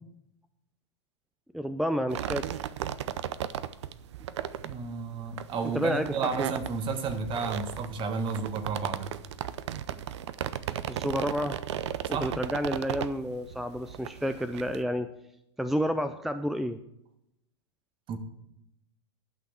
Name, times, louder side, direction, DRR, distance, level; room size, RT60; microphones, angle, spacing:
voice 1, 1.5-2.6 5.7-6.5 10.9-11.6 12.1-15.1 15.6-16.8, equal, ahead, 11 dB, 0.4 m, -30 dB
sound 1, 2.1-14.8, right 10 dB, 75° right, 0.6 m, -36 dB
voice 2, 4.6-9.1 12.0-12.3 18.1-18.2, right 5 dB, 35° right, 8 dB, 1.4 m, -32 dB
11.5 x 6.2 x 6.9 m, 0.84 s
hypercardioid pair, 115°, 15 cm